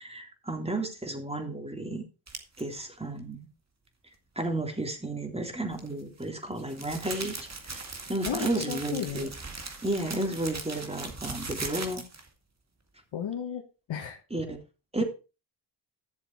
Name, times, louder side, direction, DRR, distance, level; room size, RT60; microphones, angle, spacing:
voice 1, 0.0-2.1 2.6-3.5 4.3-7.4 7.7-7.8 8.1-9.3 9.8-12.0 14.3-14.6 14.9-15.0, right 2 dB, 15° right, 4 dB, 3.2 m, -32 dB
sound 1, 2.3-2.6 5.7-12.3, right 3 dB, 35° right, 2.2 m, -39 dB
voice 2, 8.2-9.3 13.1-13.6 13.9-14.2, left 8 dB, 75° left, 3 dB, 1.6 m, -34 dB
12.0 x 7.0 x 4.6 m, 0.32 s
cardioid pair, 60°, 45 cm